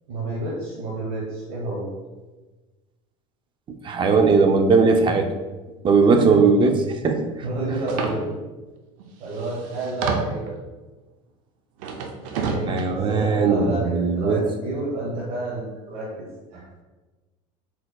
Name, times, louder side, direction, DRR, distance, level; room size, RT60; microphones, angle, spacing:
voice 1, 0.1-1.9 6.0-6.5 7.4-8.3 9.2-10.6 12.3-16.6, right 2 dB, 70° right, -5 dB, 1.1 m, -30 dB
voice 2, 3.8-5.3 5.8-6.8 7.0-7.2 12.7-14.4, right 4 dB, 30° right, 6 dB, 0.5 m, -18 dB
sound 1, 7.9-8.1 9.0-9.1 9.3-10.5 11.8-12.8, right 5 dB, 85° right, 0.6 m, -28 dB
4.3 x 4.0 x 2.3 m, 1.2 s
supercardioid pair, 115°, 16 cm